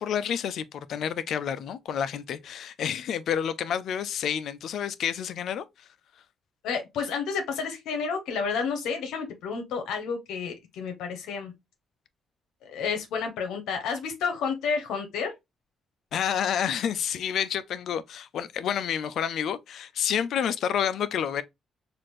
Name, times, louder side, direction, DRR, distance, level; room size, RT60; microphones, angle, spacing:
voice 1, 0.0-5.9 16.1-21.4, left 8 dB, 70° left, 0.4 m, -29 dB
voice 2, 6.6-11.5 12.7-15.3, left 5 dB, 85° left, 0.8 m, -30 dB
4.2 x 2.5 x 3.0 m
cardioid pair, 90°, 0 cm